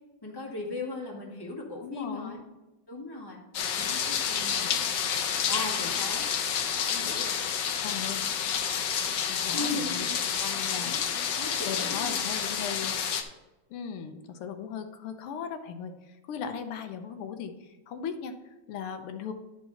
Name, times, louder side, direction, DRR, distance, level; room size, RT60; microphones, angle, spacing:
voice 1, 0.2-2.4 2.9-3.4 3.7-4.8 5.5-6.3 6.8-7.3 9.5-10.2 10.7-11.0 11.4-12.2, left 2 dB, 10° left, -2 dB, 1.4 m, -37 dB
voice 2, 1.8-2.4 7.8-8.2 9.3-10.1 10.4-11.0 11.6-13.0 13.7-19.3, left 7 dB, 90° left, 7 dB, 1.7 m, -38 dB
sound 1, 3.5-13.2, left 7 dB, 65° left, 1.3 m, -29 dB
10.5 x 4.7 x 5.7 m, 1.1 s
omnidirectional pair, 2.4 m